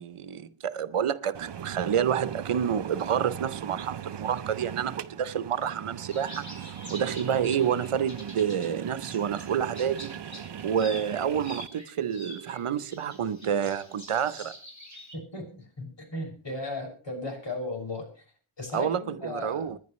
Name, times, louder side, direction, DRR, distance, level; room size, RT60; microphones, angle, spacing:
voice 1, 0.0-6.5 6.9-10.2 10.6-14.5 18.7-19.8, right 8 dB, 85° right, 0.9 m, -28 dB
sound 1, 1.3-11.7, right 9 dB, 55° right, 0.7 m, -40 dB
sound 2, 6.1-8.7 9.1-15.2, equal, 35° left, 7.1 m, -46 dB
voice 2, 15.1-18.2 18.6-19.7, left 2 dB, 60° left, 6.4 m, -36 dB
27.5 x 10.5 x 3.1 m
wide cardioid pair, 80°, 50 cm